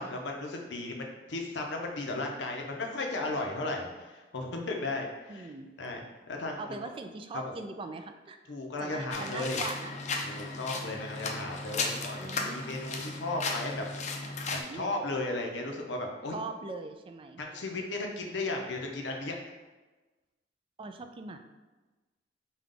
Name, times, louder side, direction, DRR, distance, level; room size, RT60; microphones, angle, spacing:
voice 1, 0.0-5.5 5.8-6.6 7.3-7.5 8.5-9.6 10.3-14.1 14.7-16.4 17.4-19.3, left 2 dB, 80° left, 1 dB, 0.7 m, -35 dB
voice 2, 5.3-5.7 6.6-8.4 8.8-9.9 10.7-10.8 11.1-11.4 12.2-12.7 14.5-14.9 16.3-17.4 20.8-21.4, right 3 dB, 30° right, 7 dB, 0.3 m, -41 dB
sound 1, 9.1-14.6, left 3 dB, 40° left, 0.5 m, -35 dB
5.1 x 2.3 x 3.7 m, 1.2 s
head